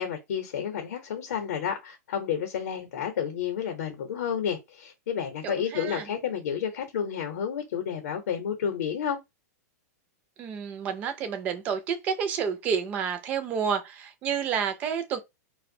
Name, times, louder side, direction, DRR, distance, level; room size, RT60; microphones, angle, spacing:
voice 1, 0.0-9.2, left 8 dB, 65° left, 0.6 m, -31 dB
voice 2, 5.4-6.1 10.4-15.2, right 7 dB, 15° right, 0.3 m, -30 dB
2.5 x 2.1 x 2.6 m
supercardioid pair, 170°, 9 cm